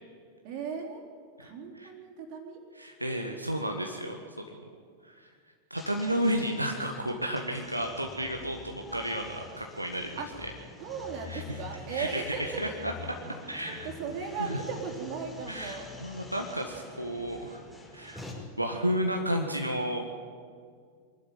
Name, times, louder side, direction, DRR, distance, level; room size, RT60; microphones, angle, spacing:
voice 1, 0.4-1.0 1.4-2.6 10.2-10.3 10.8-12.6 13.7-15.9, right 5 dB, 45° right, 1 dB, 4.0 m, -37 dB
voice 2, 1.4-1.9 2.7-4.4 5.0-5.3 5.7-10.5 11.3-11.4 11.9-12.9 13.5-13.9 14.4-14.6 15.5-17.6 17.9-18.2 18.6-20.0, equal, 85° right, 2 dB, 1.6 m, -32 dB
sound 1, 5.7-18.3, left 3 dB, 5° left, 5.2 m, -47 dB
24.0 x 12.0 x 9.4 m, 2.1 s
figure-of-eight pair, 90°, 0 cm